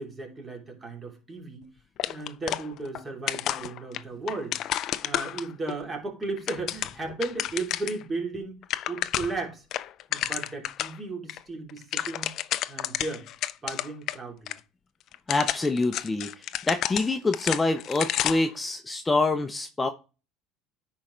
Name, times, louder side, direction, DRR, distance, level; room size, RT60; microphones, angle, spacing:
voice 1, 0.0-1.6 2.1-4.6 5.0-8.6 8.9-9.6 10.1-12.3 12.7-13.2 13.6-14.6, right 3 dB, 25° right, 3.0 m, -35 dB
sound 1, 2.0-3.0 3.3-5.7 6.2-8.0 8.3-8.4 8.6-9.4 9.7-11.0 11.3-11.4 11.7-14.2 14.5-14.6 15.1-18.5, left 12 dB, 55° left, 0.4 m, -31 dB
voice 2, 15.3-16.3 16.7-19.9, left 3 dB, 15° left, 0.7 m, -26 dB
10.0 x 4.4 x 3.2 m
supercardioid pair, 90°, 0 cm